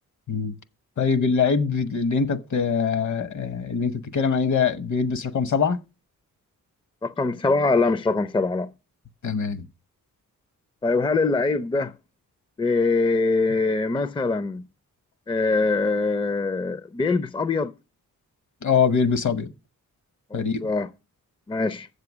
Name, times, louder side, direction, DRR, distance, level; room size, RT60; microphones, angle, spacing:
voice 1, 1.0-5.8 9.2-9.6 18.6-19.5 20.3-20.7, left 5 dB, 60° left, 1.0 m, -23 dB
voice 2, 7.0-8.7 10.8-11.9 12.6-14.7 15.3-17.7 20.3-20.9 21.5-21.9, left 3 dB, 15° left, 0.5 m, -23 dB
7.6 x 6.7 x 6.1 m
cardioid pair, 80°, 34 cm